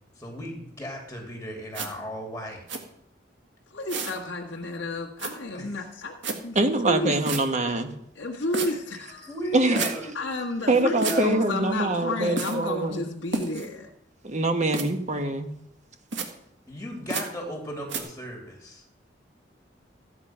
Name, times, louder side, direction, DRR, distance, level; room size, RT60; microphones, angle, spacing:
voice 1, 0.2-2.6 5.5-5.7 9.3-10.2 10.7-11.4 16.7-18.8, equal, 10° left, 0 dB, 2.8 m, -35 dB
sound 1, 1.7-1.9 2.7-2.8 3.9-4.2 5.2-5.3 6.2-6.4 7.3-7.4 8.5-8.7 9.8-9.9 11.0-11.2 12.4-12.6 13.3-13.7 14.7-14.9 16.1-16.3 17.1-17.3 17.9-18.0, right 4 dB, 85° right, 1.8 m, -30 dB
voice 2, 3.7-6.2 6.4-7.2 8.1-9.3 10.1-13.9, left 2 dB, 80° left, -1 dB, 1.6 m, -31 dB
voice 3, 6.5-7.9 9.5-9.9 10.7-13.0 14.2-15.5, right 2 dB, 40° right, 7 dB, 1.4 m, -24 dB
14.5 x 8.9 x 5.7 m, 0.77 s
head